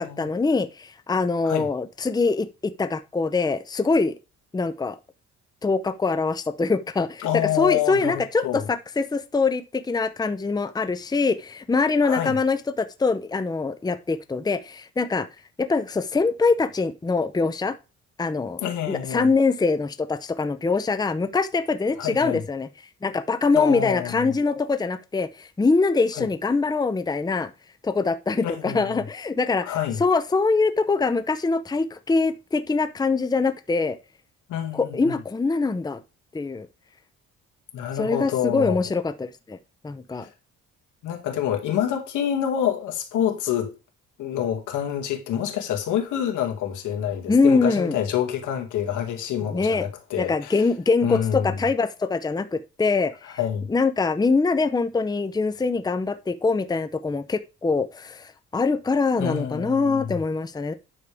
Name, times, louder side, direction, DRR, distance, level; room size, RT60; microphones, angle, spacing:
voice 1, 0.0-4.1 4.5-5.0 5.6-15.3 15.6-17.7 18.2-18.6 18.9-22.7 23.0-27.5 27.8-34.0 34.7-36.0 36.3-36.7 38.0-39.6 39.8-40.3 47.3-48.0 49.5-49.9 50.2-53.4 53.7-60.7, left 4 dB, 15° left, 0.6 m, -23 dB
voice 2, 7.2-8.7 12.0-12.3 18.6-19.3 22.0-22.4 23.5-24.3 26.2-26.3 28.4-29.0 29.6-30.0 34.5-35.1 37.7-38.8 40.2-40.3 41.0-43.7 44.2-50.6 51.0-51.6 53.4-53.7 59.2-60.2, left 10 dB, 85° left, 2.3 m, -27 dB
9.8 x 6.5 x 3.5 m
cardioid pair, 90°, 30 cm